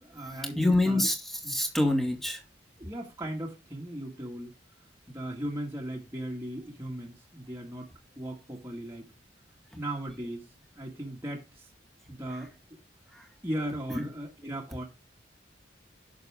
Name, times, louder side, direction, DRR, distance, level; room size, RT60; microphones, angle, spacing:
voice 1, 0.0-1.1 1.4-1.6 2.8-4.5 5.1-7.9 8.2-9.1 9.8-10.5 10.8-11.7 12.1-12.5 13.4-14.8, right 1 dB, 15° right, 1.9 m, -37 dB
voice 2, 0.6-2.4 13.1-13.3 13.9-14.0, left 1 dB, ahead, 2.1 m, -26 dB
11.0 x 7.0 x 3.6 m
head